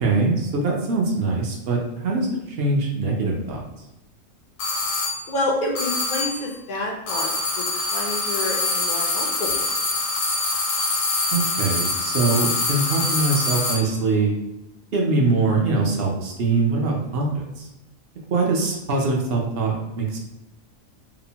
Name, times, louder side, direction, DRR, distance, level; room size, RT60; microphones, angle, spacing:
voice 1, 0.0-3.6 11.3-14.3 14.9-17.7 18.3-20.2, right 3 dB, 60° right, 0 dB, 0.7 m, -23 dB
sound 1, 4.6-5.3 5.8-6.5 7.1-13.9, left 2 dB, 75° left, 1.0 m, -25 dB
voice 2, 5.3-7.3 7.6-9.7, left 2 dB, 60° left, -1 dB, 0.5 m, -28 dB
2.8 x 2.0 x 2.7 m, 0.99 s
omnidirectional pair, 1.4 m